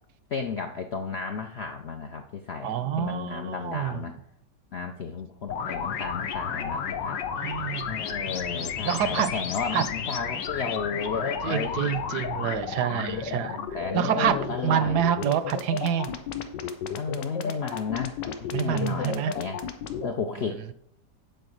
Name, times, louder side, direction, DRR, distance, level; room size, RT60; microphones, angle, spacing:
voice 1, 0.3-4.1 4.7-7.2 7.9-11.9 12.9-15.1 17.0-19.6 20.0-20.7, left 5 dB, 65° left, 5 dB, 0.6 m, -33 dB
voice 2, 2.6-4.1 7.4-8.0 8.8-9.4 9.7-9.9 11.4-13.6 13.9-16.2 18.5-19.3, right 9 dB, 75° right, 12 dB, 1.1 m, -27 dB
sound 1, 5.5-20.1, left 7 dB, 90° left, 1.5 m, -32 dB
9.1 x 4.7 x 6.5 m, 0.72 s
omnidirectional pair, 1.9 m